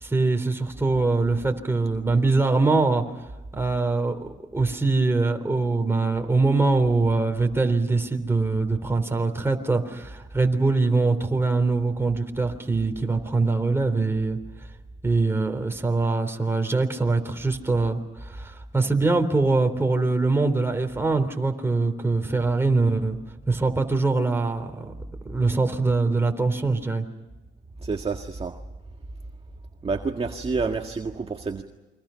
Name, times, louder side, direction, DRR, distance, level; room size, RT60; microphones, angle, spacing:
voice 1, 0.0-3.0 3.5-14.4 15.0-23.2 23.5-24.9 25.3-27.1, right 3 dB, 10° right, 4 dB, 3.6 m, -23 dB
voice 2, 27.8-28.5 29.8-31.6, right 4 dB, 30° right, 3 dB, 1.8 m, -28 dB
29.0 x 24.0 x 5.8 m, 1.1 s
cardioid pair, 90°, 20 cm